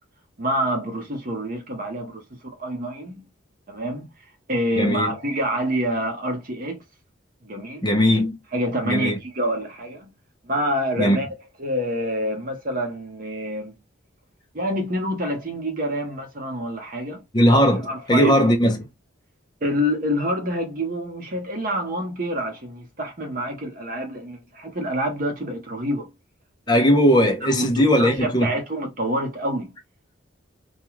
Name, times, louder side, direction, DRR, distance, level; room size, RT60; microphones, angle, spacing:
voice 1, 0.4-2.2 2.6-3.3 3.7-4.0 4.5-6.8 7.4-7.8 8.5-10.1 10.4-11.3 11.6-13.7 14.5-17.2 17.8-18.3 19.6-26.1 26.7-26.8 27.4-29.7, equal, 45° right, 0.8 m, -27 dB
voice 2, 4.8-5.1 7.8-8.3 8.9-9.2 11.0-11.2 17.3-18.8 26.7-28.5, equal, 20° left, 0.5 m, -18 dB
2.4 x 2.2 x 3.0 m
head